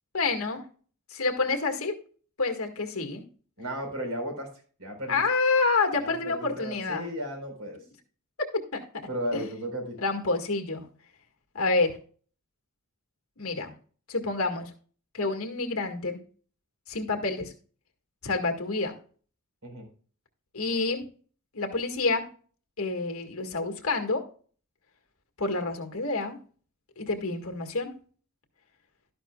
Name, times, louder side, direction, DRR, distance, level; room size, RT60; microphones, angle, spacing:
voice 1, 0.1-0.6 1.1-1.9 2.4-3.2 5.1-7.1 8.7-8.8 9.3-9.4 10.0-10.8 11.5-12.0 13.4-13.7 14.1-14.7 15.1-16.2 16.9-17.5 18.2-18.9 20.5-21.0 21.5-22.3 22.8-24.3 25.4-26.4 27.0-27.9, left 3 dB, 65° left, 5 dB, 1.8 m, -28 dB
voice 2, 3.6-4.5 4.8-5.2 5.9-7.8 9.1-10.0 19.6-19.9, equal, 75° right, 2 dB, 4.2 m, -34 dB
12.5 x 10.5 x 2.3 m, 0.42 s
head